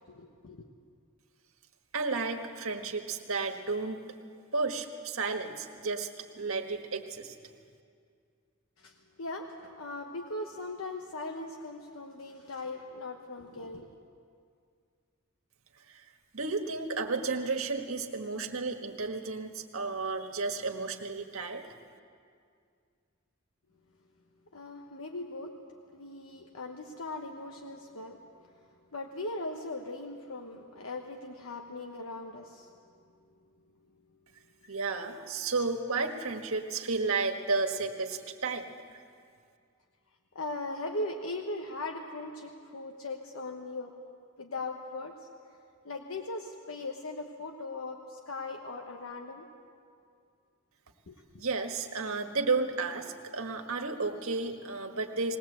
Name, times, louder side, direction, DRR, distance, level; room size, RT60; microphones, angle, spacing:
voice 1, 0.1-0.7 8.8-14.0 24.5-25.5 25.9-28.2 28.4-28.6 28.9-32.7 34.6-34.7 35.1-35.2 40.3-43.9 44.4-45.3 45.8-49.5 51.1-51.2, left 2 dB, 85° left, 3 dB, 1.1 m, -39 dB
voice 2, 1.9-4.0 4.5-6.1 6.3-7.3 15.9-16.0 16.3-21.7 34.7-38.6 51.4-55.4, right 4 dB, 85° right, 4 dB, 1.5 m, -32 dB
20.5 x 18.0 x 7.9 m, 2.2 s
head